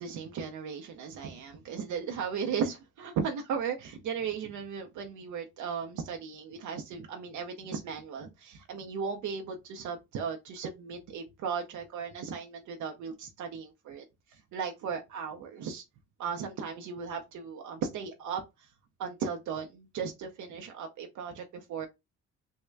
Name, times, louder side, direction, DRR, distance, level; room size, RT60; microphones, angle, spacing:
voice 1, 0.0-14.0 14.3-15.8 16.2-18.4 19.0-21.9, right 6 dB, 75° right, 0.7 m, -36 dB
3.6 x 2.1 x 3.3 m
cardioid pair, 90°, 30 cm